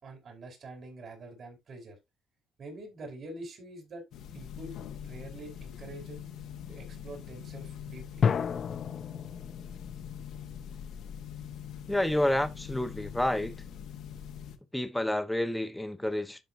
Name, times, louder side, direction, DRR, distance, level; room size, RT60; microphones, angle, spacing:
voice 1, 0.0-2.0 2.6-4.0 4.3-4.8 5.0-6.2 6.7-8.3, right 2 dB, 50° right, 4.6 m, -45 dB
sound 1, 4.1-14.6, left 8 dB, 75° left, 1.3 m, -43 dB
sound 2, 8.2-11.7, left 7 dB, 50° left, 0.6 m, -33 dB
voice 2, 11.9-13.5 14.7-16.4, left 1 dB, 5° left, 1.0 m, -29 dB
11.5 x 5.0 x 2.6 m
cardioid pair, 90°, 0 cm